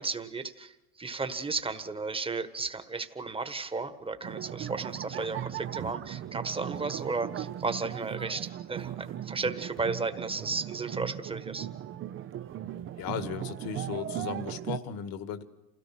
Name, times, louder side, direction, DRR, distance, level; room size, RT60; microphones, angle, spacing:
voice 1, 0.0-11.7, right 4 dB, 10° right, 10 dB, 1.4 m, -34 dB
sound 1, 4.2-14.8, right 11 dB, 25° right, 0.6 m, -38 dB
voice 2, 13.0-15.4, left 8 dB, 50° left, 11 dB, 1.9 m, -36 dB
27.5 x 17.0 x 6.0 m, 0.99 s
hypercardioid pair, 100°, 46 cm